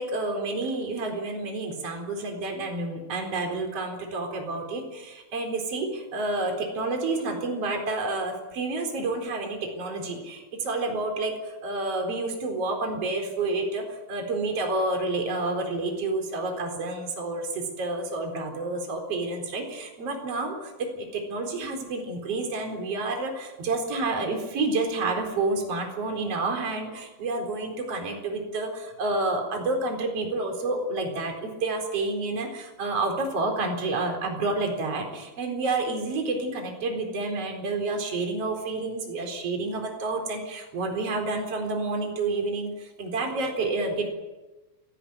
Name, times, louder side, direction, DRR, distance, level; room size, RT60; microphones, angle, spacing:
voice 1, 0.0-44.1, right 2 dB, 40° right, 2 dB, 5.0 m, -29 dB
28.5 x 15.0 x 9.5 m, 1.1 s
omnidirectional pair, 4.3 m